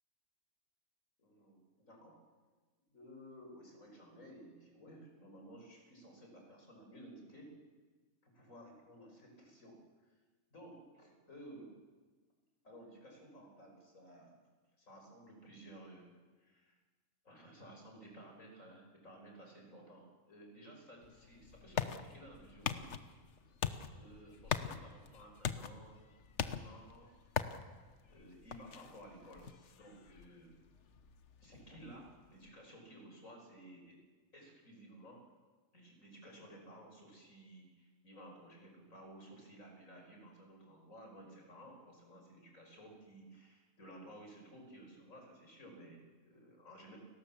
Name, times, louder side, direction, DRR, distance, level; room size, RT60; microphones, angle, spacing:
voice 1, 1.2-2.2 2.9-7.5 8.2-9.8 10.1-10.2 10.5-11.7 12.6-14.4 14.8-16.8 17.2-22.9 23.9-27.1 28.0-30.6 31.4-34.0 34.3-35.2 35.7-47.0, right 1 dB, 80° left, 2 dB, 5.9 m, -55 dB
sound 1, 21.0-32.5, left 7 dB, 60° left, 1.3 m, -43 dB
30.0 x 19.0 x 7.4 m, 1.4 s
omnidirectional pair, 1.4 m